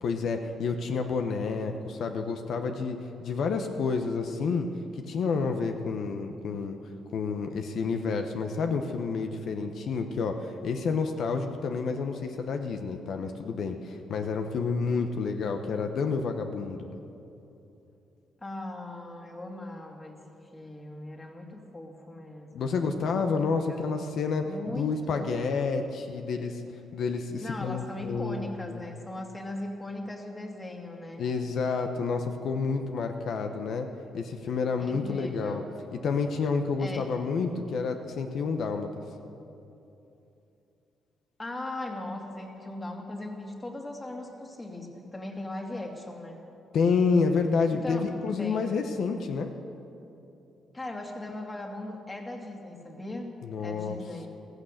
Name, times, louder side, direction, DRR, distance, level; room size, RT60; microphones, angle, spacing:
voice 1, 0.0-4.7 5.1-6.8 7.1-16.8 22.5-26.6 26.9-28.8 31.2-33.9 34.1-35.6 36.0-38.9 46.7-49.5 53.4-54.0, left 5 dB, 65° left, 6 dB, 1.0 m, -29 dB
voice 2, 18.4-20.3 20.5-22.8 23.7-24.0 24.4-25.4 27.4-31.2 34.8-35.7 36.8-37.1 41.4-46.4 47.7-48.0 48.4-48.7 50.7-53.3 53.6-54.3, left 1 dB, 20° left, 2 dB, 2.3 m, -39 dB
15.0 x 14.5 x 6.5 m, 2.8 s
cardioid pair, 90°, 0 cm